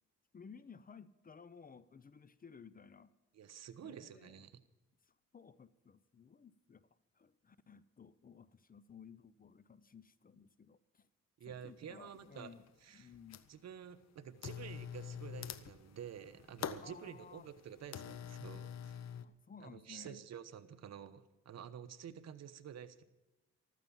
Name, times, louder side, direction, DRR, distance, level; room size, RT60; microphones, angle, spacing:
voice 1, 0.3-3.1 3.8-4.4 5.1-6.9 7.2-11.1 11.5-12.6 12.9-13.4 16.8-17.5 19.2-20.2, left 6 dB, 30° left, 16 dB, 0.7 m, -57 dB
voice 2, 3.3-4.6 11.4-12.5 12.8-13.1 13.5-19.1 19.6-23.0, right 8 dB, 60° right, 11 dB, 1.1 m, -50 dB
sound 1, 11.5-11.6 12.1-12.7 13.0-13.7 14.4-19.2, left 9 dB, 60° left, 0.9 m, -46 dB
14.5 x 13.5 x 5.5 m, 1.0 s
cardioid pair, 90°, 30 cm